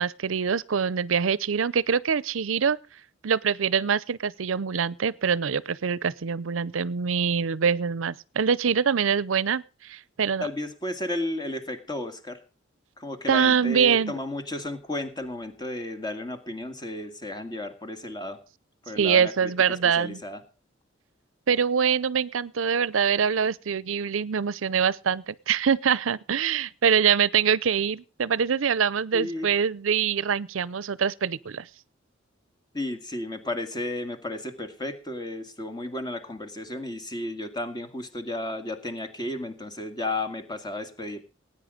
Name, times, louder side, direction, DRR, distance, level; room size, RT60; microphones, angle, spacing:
voice 1, 0.0-2.8 3.2-10.5 13.3-14.1 19.0-20.2 21.5-31.7, right 6 dB, 80° right, 0.6 m, -24 dB
voice 2, 10.4-12.4 13.0-18.4 18.8-20.4 29.1-29.5 32.7-41.2, left 1 dB, 20° left, 2.0 m, -33 dB
18.0 x 9.5 x 5.0 m
head